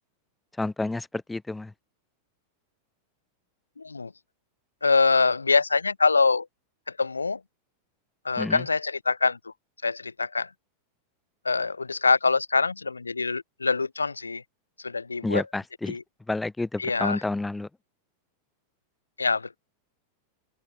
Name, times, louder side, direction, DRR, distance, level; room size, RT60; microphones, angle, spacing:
voice 1, 0.6-1.7 8.4-8.6 15.2-16.0 16.3-17.7, left 2 dB, 5° left, 0.7 m, -29 dB
voice 2, 3.8-4.1 4.8-6.5 6.9-7.4 8.2-9.5 9.8-10.5 11.4-14.4 14.8-15.4 15.9-16.0 16.8-17.2 19.2-19.6, left 4 dB, 80° left, 0.6 m, -24 dB
open air
figure-of-eight pair, 90°, 0 cm